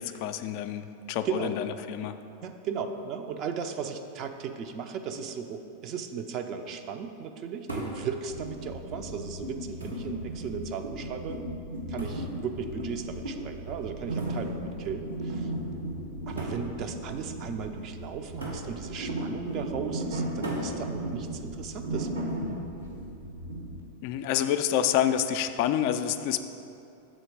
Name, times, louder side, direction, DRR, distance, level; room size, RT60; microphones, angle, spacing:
voice 1, 0.0-2.2 24.0-26.4, left 10 dB, 45° left, 9 dB, 0.3 m, -28 dB
voice 2, 1.2-1.6 2.4-11.5 11.9-15.5 16.3-22.3, right 6 dB, 35° right, 6 dB, 0.5 m, -36 dB
sound 1, 7.7-8.0 9.1-9.2 9.8-10.2 12.0-12.3 14.2-14.5 15.5-15.6 16.4-16.7 18.4-18.7 20.4-20.7 22.3-22.7, right 1 dB, 85° right, 1.6 m, -37 dB
sound 2, 8.3-23.8, right 1 dB, 70° right, 1.2 m, -36 dB
6.2 x 4.4 x 6.5 m, 2.6 s
figure-of-eight pair, 90°, 0 cm